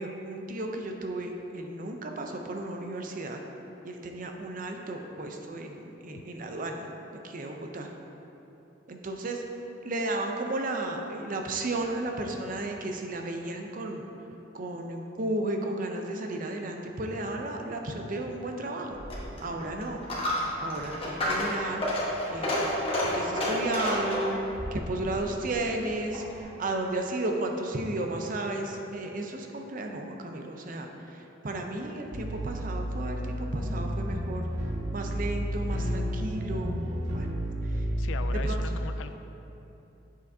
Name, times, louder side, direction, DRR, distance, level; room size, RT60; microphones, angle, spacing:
voice 1, 0.0-3.4 3.8-6.9 7.2-7.9 8.9-9.4 9.8-14.1 14.5-20.0 20.6-21.8 22.3-22.7 23.1-34.5 34.9-36.8 37.1-37.3 37.6-37.9 38.4-38.8, right 2 dB, 45° right, 3 dB, 0.6 m, -34 dB
Coin (dropping), 18.9-26.4, left 1 dB, 30° left, 1.2 m, -31 dB
sound 1, 32.1-38.5, equal, 70° right, 0.9 m, -31 dB
voice 2, 38.0-39.1, left 6 dB, 85° left, 10 dB, 0.3 m, -39 dB
7.6 x 6.7 x 2.7 m, 3.0 s
head